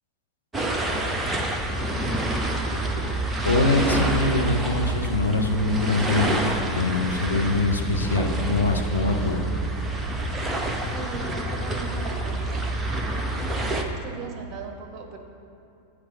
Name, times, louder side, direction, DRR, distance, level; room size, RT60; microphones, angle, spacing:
sound 1, 0.5-13.8, right 2 dB, 10° right, 0.8 m, -27 dB
voice 1, 3.4-9.5, left 2 dB, 75° left, 2 dB, 0.8 m, -24 dB
voice 2, 10.9-12.6 12.9-13.3 13.7-15.2, right 5 dB, 30° right, 3 dB, 1.2 m, -39 dB
9.0 x 4.9 x 7.2 m, 2.7 s
figure-of-eight pair, 90°, 0 cm